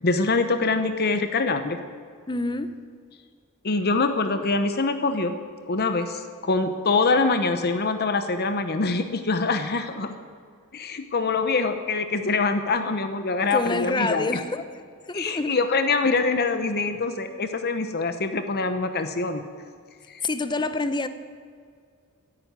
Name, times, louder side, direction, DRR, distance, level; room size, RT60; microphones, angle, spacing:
voice 1, 0.0-1.8 3.6-5.4 5.7-10.1 10.7-14.4 15.1-19.4 20.1-20.2, left 3 dB, 45° left, 9 dB, 0.9 m, -24 dB
voice 2, 2.3-2.7 13.5-14.6 15.1-15.6 20.2-21.1, left 3 dB, 20° left, 11 dB, 0.7 m, -27 dB
13.5 x 11.0 x 9.3 m, 2.1 s
head